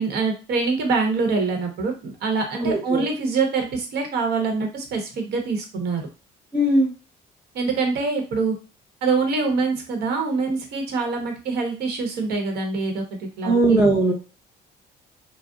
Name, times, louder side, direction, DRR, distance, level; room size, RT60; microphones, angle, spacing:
voice 1, 0.0-6.0 7.5-8.5 9.0-13.9, right 4 dB, 70° right, 3 dB, 0.9 m, -25 dB
voice 2, 2.6-3.1 6.5-6.9 13.4-14.1, right 2 dB, 10° right, -3 dB, 0.6 m, -19 dB
2.5 x 2.0 x 3.5 m, 0.32 s
cardioid pair, 110°, 17 cm